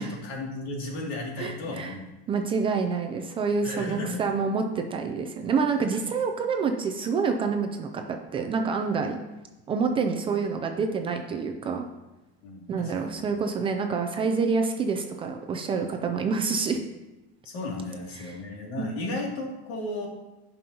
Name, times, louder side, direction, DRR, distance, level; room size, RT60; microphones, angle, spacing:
voice 1, 0.0-2.0 3.6-4.2 5.9-6.0 12.4-13.3 17.4-20.1, left 2 dB, 80° left, -1 dB, 2.5 m, -34 dB
voice 2, 1.4-1.9 2.3-9.2 9.7-11.8 12.7-16.8 18.2-18.4 18.8-19.1, right 5 dB, 20° right, 4 dB, 0.4 m, -27 dB
16.0 x 5.4 x 2.9 m, 1.0 s
cardioid pair, 170°, 31 cm